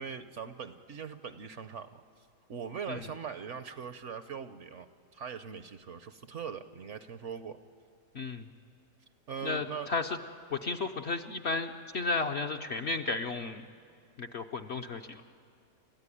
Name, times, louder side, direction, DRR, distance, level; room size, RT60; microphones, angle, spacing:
voice 1, 0.0-2.0 2.5-4.9 5.1-7.6 9.3-9.9, right 7 dB, 60° right, 10 dB, 0.9 m, -41 dB
voice 2, 8.1-8.5 9.4-10.2 10.5-13.6 14.2-15.2, left 3 dB, 55° left, 5 dB, 0.8 m, -33 dB
29.5 x 14.0 x 9.9 m, 2.2 s
omnidirectional pair, 1.7 m